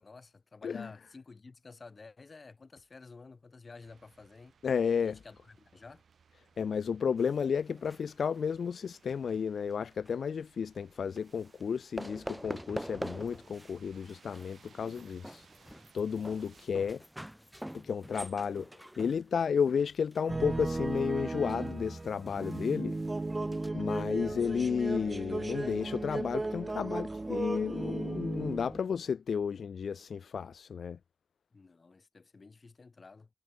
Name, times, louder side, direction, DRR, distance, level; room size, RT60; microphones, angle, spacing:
voice 1, 0.0-4.5 5.0-6.0 14.7-15.2 31.5-33.3, left 4 dB, 55° left, 5.7 m, -52 dB
sound 1, 3.8-16.7, right 6 dB, 80° right, 7.6 m, -64 dB
voice 2, 4.6-5.2 6.6-15.5 15.9-17.0 17.8-22.9 23.7-31.0, left 6 dB, 85° left, 0.7 m, -32 dB
sound 2, 7.2-9.4 9.7-10.1 11.2-11.6 12.0-13.7 14.0-23.7, equal, 5° right, 7.5 m, -46 dB
sound 3, 20.3-28.8, right 2 dB, 35° right, 0.4 m, -35 dB
cardioid pair, 40°, 0 cm